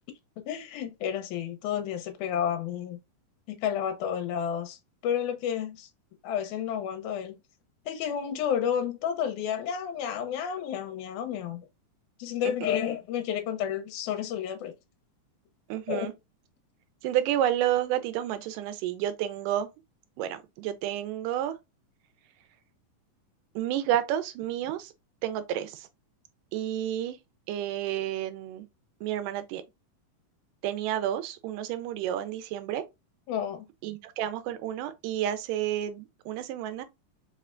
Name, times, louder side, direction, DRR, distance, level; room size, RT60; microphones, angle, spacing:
voice 1, 0.5-3.0 3.5-4.8 5.0-5.9 6.2-7.4 7.9-11.7 12.2-14.7 15.9-16.1 33.3-33.7, left 9 dB, 75° left, 2.0 m, -31 dB
voice 2, 15.7-16.1 17.0-19.7 20.2-21.6 23.6-24.9 25.2-25.9 26.5-27.2 27.5-28.7 29.0-29.6 30.6-32.8 33.8-36.8, right 11 dB, 85° right, 2.2 m, -30 dB
5.0 x 3.2 x 2.4 m
omnidirectional pair, 3.8 m